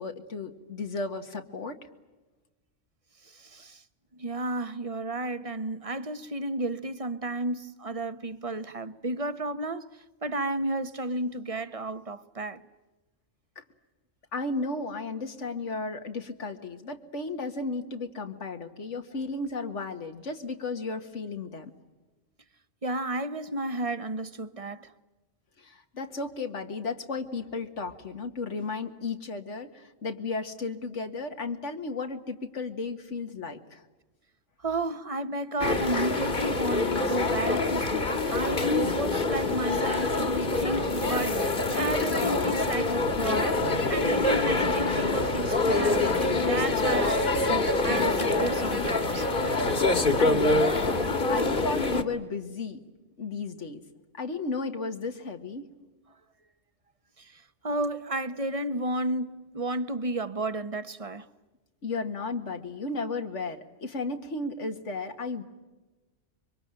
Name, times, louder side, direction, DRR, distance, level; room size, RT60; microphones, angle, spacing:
voice 1, 0.0-1.8 14.3-21.7 25.6-33.8 50.2-52.8 53.2-53.8 54.1-55.7 61.8-65.4, left 3 dB, 90° left, 2.0 m, -34 dB
voice 2, 3.2-3.8 4.1-9.9 10.2-12.6 22.8-24.9 34.6-43.6 43.9-49.3 57.2-61.3, right 2 dB, 30° right, 1.0 m, -32 dB
sound 1, 35.6-52.0, left 2 dB, 45° left, 1.8 m, -25 dB
26.0 x 24.0 x 9.0 m
omnidirectional pair, 1.2 m